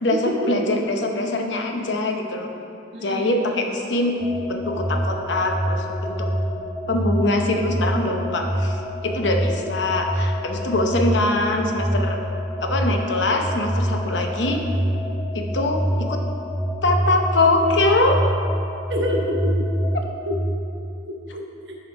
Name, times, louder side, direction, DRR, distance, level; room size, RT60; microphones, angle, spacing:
voice 1, 0.0-2.5 3.0-4.2 4.5-6.3 6.9-8.8 9.0-12.2 12.6-14.6 15.3-16.2 16.8-18.2 19.9-20.1, left 2 dB, 75° left, 3 dB, 0.8 m, -23 dB
voice 2, 2.9-3.3 18.9-19.6 20.3-20.4 21.0-21.8, left 1 dB, 65° right, -1 dB, 1.1 m, -27 dB
sound 1, 4.2-20.3, equal, ahead, 0.7 m, -26 dB
7.0 x 5.2 x 5.3 m, 2.6 s
head